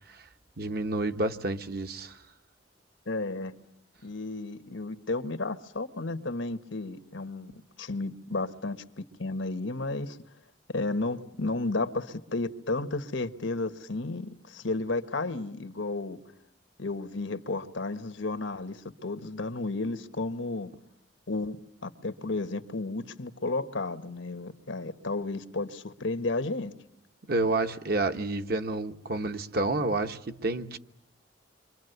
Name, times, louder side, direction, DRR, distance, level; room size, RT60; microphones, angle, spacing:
voice 1, 0.6-2.2 27.3-30.8, right 2 dB, 55° right, 1.1 m, -29 dB
voice 2, 3.1-3.5 4.0-7.5 7.8-10.2 10.7-16.2 16.8-20.7 21.3-21.6 21.8-26.7, left 2 dB, 90° left, 1.3 m, -33 dB
28.0 x 24.0 x 8.1 m
head